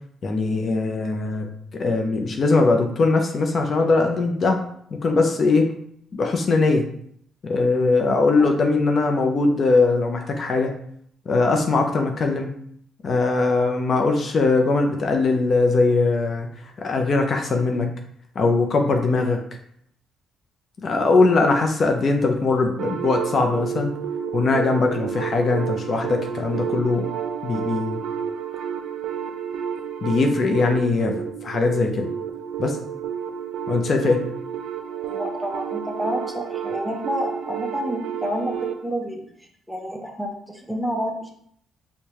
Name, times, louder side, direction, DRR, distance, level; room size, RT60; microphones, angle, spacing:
voice 1, 0.2-1.5 1.7-4.6 5.0-5.7 6.1-6.8 7.4-10.7 11.3-12.5 13.0-16.5 16.8-17.9 18.4-19.4 20.8-23.9 24.3-27.0 27.4-28.0 30.0-32.1 32.6-32.8 33.7-34.2, left 3 dB, 50° left, 3 dB, 0.5 m, -20 dB
sound 1, 22.8-38.8, right 8 dB, 75° right, 0.5 m, -30 dB
voice 2, 35.1-39.3 39.7-41.3, equal, 5° right, 1 dB, 0.7 m, -29 dB
4.6 x 2.2 x 2.9 m, 0.67 s
cardioid pair, 90°, 0 cm